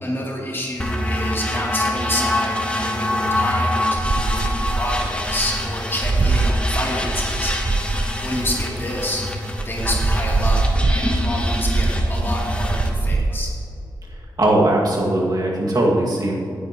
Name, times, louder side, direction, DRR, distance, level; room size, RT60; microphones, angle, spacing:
voice 1, 0.0-7.8 8.2-9.2 9.6-10.6 10.9-13.5, left 1 dB, 30° left, -4 dB, 2.9 m, -28 dB
sound 1, 0.8-12.9, left 1 dB, 15° left, 1.1 m, -25 dB
sound 2, 4.0-9.1 9.6-13.4, right 3 dB, 35° right, 0.5 m, -22 dB
voice 2, 14.4-16.3, right 1 dB, 60° right, -3 dB, 2.1 m, -19 dB
17.0 x 9.4 x 3.0 m, 2.5 s
wide cardioid pair, 100°, 8 cm